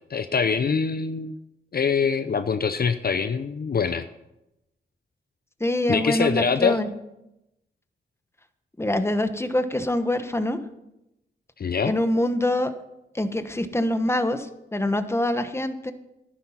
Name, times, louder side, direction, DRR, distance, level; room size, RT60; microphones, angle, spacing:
voice 1, 0.0-1.4 1.7-4.0 5.9-6.8 11.6-11.9, left 5 dB, 50° left, 11 dB, 0.6 m, -24 dB
voice 2, 5.6-6.9 8.8-10.6 11.8-12.7 13.1-15.9, left 1 dB, 15° left, 10 dB, 1.1 m, -25 dB
11.0 x 9.9 x 5.7 m, 0.88 s
cardioid pair, 55°, 20 cm